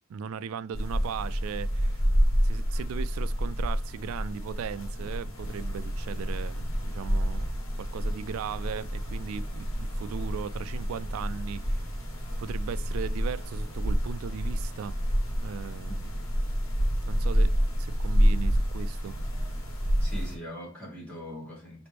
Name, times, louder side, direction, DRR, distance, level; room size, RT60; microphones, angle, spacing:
voice 1, 0.1-2.0 2.4-7.5 7.8-11.9 12.4-15.1 15.4-16.2 17.0-17.5 17.8-19.2, right 7 dB, 85° right, 0.3 m, -38 dB
sound 1, 0.7-20.4, equal, 80° left, 1.4 m, -28 dB
voice 2, 20.0-21.9, equal, 5° left, 2.1 m, -41 dB
5.0 x 3.0 x 3.3 m
head